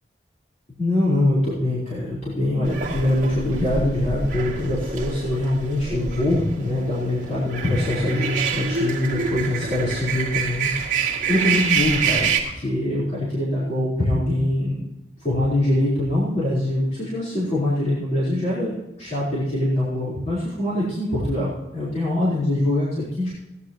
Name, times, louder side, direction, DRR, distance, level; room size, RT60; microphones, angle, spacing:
voice 1, 0.8-14.9 15.2-23.3, left 1 dB, 40° left, -9 dB, 4.3 m, -23 dB
sound 1, 2.7-12.4, right 5 dB, 40° right, 2.5 m, -27 dB
17.5 x 10.5 x 3.0 m, 1.0 s
head